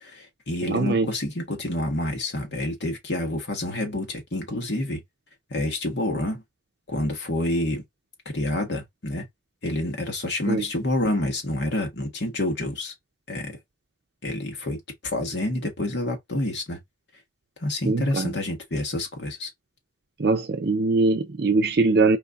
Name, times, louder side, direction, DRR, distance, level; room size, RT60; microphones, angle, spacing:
voice 1, 0.0-5.0 5.5-6.4 6.9-7.8 8.3-9.2 9.6-12.9 13.3-13.6 14.2-14.8 15.0-16.8 17.6-19.5, left 1 dB, 65° left, 1.5 m, -28 dB
voice 2, 0.6-1.1 10.5-10.7 17.9-18.3 20.2-22.2, right 3 dB, 55° right, 0.5 m, -22 dB
4.6 x 2.7 x 3.4 m
head